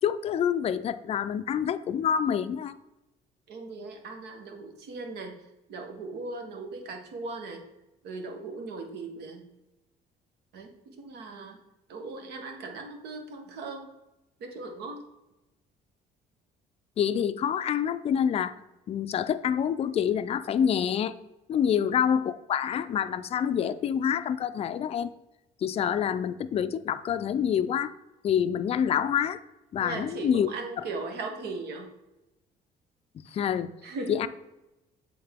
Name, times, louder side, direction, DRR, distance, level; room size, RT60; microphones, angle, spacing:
voice 1, 0.0-2.8 17.0-18.5 18.9-21.1 21.5-25.1 25.6-27.9 28.2-29.4 29.7-30.5 30.8-30.9 33.3-33.7 34.1-34.3, left 8 dB, 35° left, 12 dB, 0.3 m, -27 dB
voice 2, 3.5-5.4 5.7-7.6 8.0-9.4 10.5-11.6 11.9-13.9 14.4-15.0 21.7-21.9 29.8-31.9 33.8-34.2, right 3 dB, 75° right, 4 dB, 1.2 m, -38 dB
7.9 x 3.7 x 3.5 m, 0.96 s
cardioid pair, 110°, 17 cm